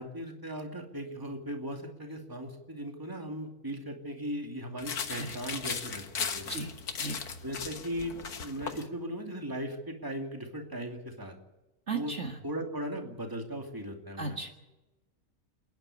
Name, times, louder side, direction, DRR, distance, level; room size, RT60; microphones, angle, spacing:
voice 1, 0.0-6.6 7.4-8.1 8.4-11.4 11.9-12.1 12.4-14.5, equal, 15° right, 2 dB, 2.6 m, -38 dB
sound 1, 4.8-8.8, left 6 dB, 90° left, 1.9 m, -37 dB
voice 2, 6.5-7.2 11.9-12.4 14.2-14.5, right 3 dB, 50° right, 2 dB, 2.0 m, -36 dB
28.0 x 10.5 x 9.9 m, 1.1 s
omnidirectional pair, 1.6 m